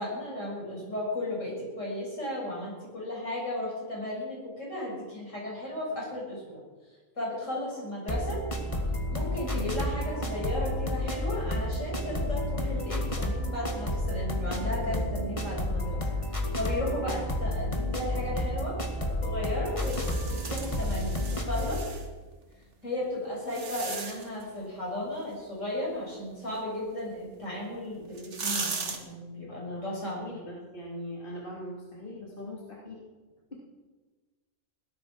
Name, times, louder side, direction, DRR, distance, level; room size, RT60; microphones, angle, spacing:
voice 1, 0.0-6.6 7.2-8.4 9.1-16.0 16.3-18.8 19.2-21.9 22.8-30.2, left 1 dB, 65° left, -3 dB, 6.8 m, -35 dB
sound 1, 8.1-21.8, left 1 dB, 25° left, 1.9 m, -31 dB
voice 2, 9.4-9.8 16.8-17.2 29.5-29.8 30.2-33.0 33.5-33.6, left 1 dB, 40° left, -4 dB, 3.0 m, -41 dB
sound 2, 19.8-22.1 22.8-24.4 27.4-27.5 28.0-29.0, right 4 dB, 60° right, 2.0 m, -37 dB
17.5 x 12.5 x 6.4 m, 1.3 s
omnidirectional pair, 1.4 m